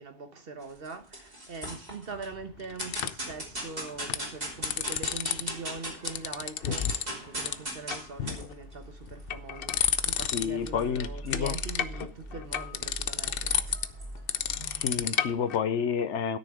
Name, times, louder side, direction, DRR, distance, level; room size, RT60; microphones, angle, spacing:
voice 1, 0.0-13.8, right 4 dB, 55° right, 1.4 m, -42 dB
sound 1, 0.6-2.3 2.8-6.2 6.5-15.0, right 1 dB, 35° right, 3.1 m, -40 dB
sound 2, 2.1-3.3 3.9-4.3 4.5-5.5 5.8-7.1 7.5-7.6 7.9-8.5 9.0-10.7 11.0-15.6, left 8 dB, 60° left, 0.8 m, -31 dB
voice 2, 10.3-11.6 14.7-16.4, left 7 dB, 80° left, 1.1 m, -29 dB
13.0 x 6.8 x 4.9 m
omnidirectional pair, 1.2 m